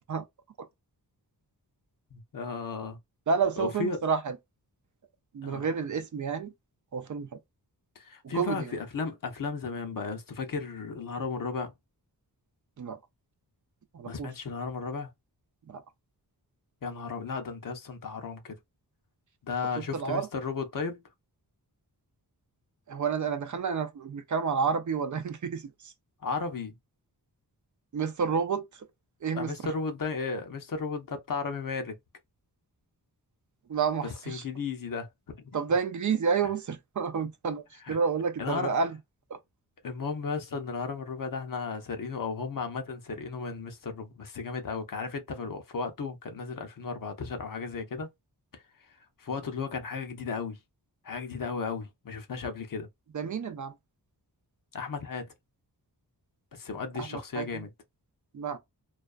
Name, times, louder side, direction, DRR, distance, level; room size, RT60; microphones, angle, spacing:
voice 1, 2.1-3.0 3.6-4.0 5.4-5.7 8.0-11.7 14.0-15.1 16.8-18.6 19.4-21.0 26.2-26.8 29.3-32.0 34.0-35.4 37.8-38.0 38.4-38.7 39.8-48.1 48.5-48.6 49.2-50.6 51.0-52.9 54.7-55.3 56.5-57.7, left 4 dB, 55° left, 0.7 m, -34 dB
voice 2, 3.3-4.4 5.3-6.5 6.9-7.3 8.2-8.7 12.8-13.0 13.9-14.3 15.7-15.8 19.9-20.3 22.9-25.9 27.9-28.6 29.2-29.5 33.7-34.4 35.5-39.0 39.3-39.4 53.1-53.7 57.0-57.6 58.3-58.6, right 5 dB, 50° right, 0.5 m, -30 dB
2.4 x 2.2 x 2.3 m
wide cardioid pair, 85°, 39 cm